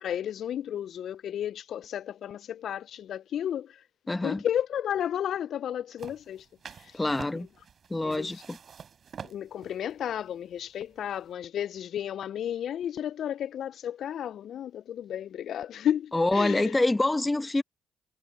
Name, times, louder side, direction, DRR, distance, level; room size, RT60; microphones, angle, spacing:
voice 1, 0.0-3.8 4.2-7.0 7.3-7.5 8.0-8.4 9.2-16.7, left 10 dB, 60° left, 0.4 m, -33 dB
voice 2, 4.1-4.4 6.9-7.5 7.9-8.6 16.1-17.6, left 2 dB, 15° left, 1.3 m, -26 dB
sound 1, 6.0-11.3, right 7 dB, 50° right, 4.0 m, -48 dB
hypercardioid pair, 50°, 0 cm